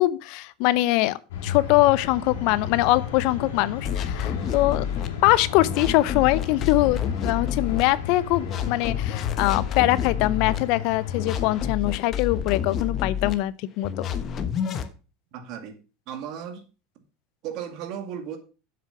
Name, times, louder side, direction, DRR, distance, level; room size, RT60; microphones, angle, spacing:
voice 1, 0.0-4.9 5.2-13.9, left 17 dB, 65° left, 0.6 m, -23 dB
sound 1, 1.3-11.8, left 8 dB, 90° left, 3.1 m, -34 dB
sound 2, 3.8-5.1 5.6-7.8 8.3-10.6 11.1-13.3 13.8-14.9, left 8 dB, 40° left, 1.1 m, -29 dB
voice 2, 15.3-15.8 16.1-16.6 17.4-18.4, right 8 dB, 55° right, 2.1 m, -35 dB
7.8 x 6.7 x 5.7 m
supercardioid pair, 120°, 0 cm